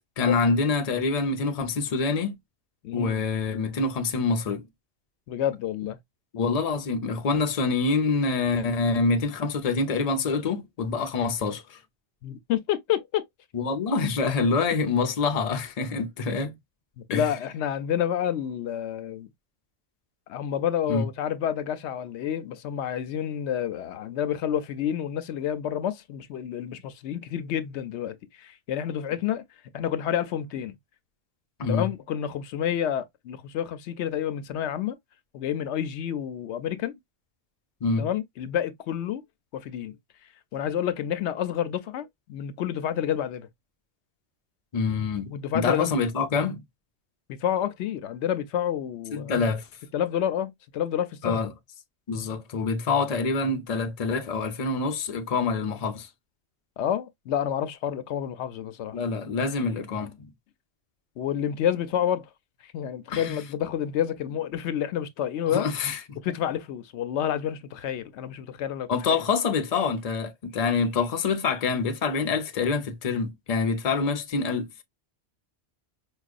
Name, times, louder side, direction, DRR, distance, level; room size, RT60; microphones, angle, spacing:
voice 1, 0.2-2.4 2.9-4.7 6.3-11.8 13.5-16.6 17.1-17.3 20.9-21.0 31.6-31.9 37.8-38.1 44.7-46.6 49.1-49.7 51.2-51.5 52.1-56.1 58.9-60.3 63.1-63.4 65.5-66.2 68.9-74.8, left 4 dB, 40° left, 0.7 m, -26 dB
voice 2, 2.8-3.2 5.3-6.0 12.2-13.2 17.0-19.3 20.3-29.4 29.7-30.7 31.7-35.0 35.3-37.0 38.0-39.2 39.5-40.0 40.5-43.5 45.3-46.0 47.3-49.4 49.9-51.4 56.8-59.0 61.2-62.3 62.6-65.7 66.2-68.9, left 10 dB, 85° left, 0.9 m, -29 dB
4.8 x 2.3 x 2.4 m
omnidirectional pair, 1.1 m